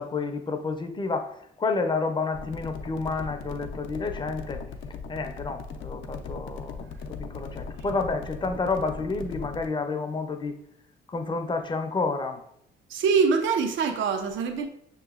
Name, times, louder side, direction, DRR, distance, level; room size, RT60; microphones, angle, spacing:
voice 1, 0.0-4.6 5.1-7.0 7.3-10.6 11.1-12.4, left 3 dB, 25° left, 6 dB, 0.5 m, -30 dB
sound 1, 2.3-9.7, left 4 dB, 75° left, 0.5 m, -38 dB
voice 2, 12.9-14.7, right 5 dB, 75° right, 6 dB, 0.5 m, -24 dB
6.1 x 2.9 x 2.4 m, 0.75 s
cardioid pair, 90°, 20 cm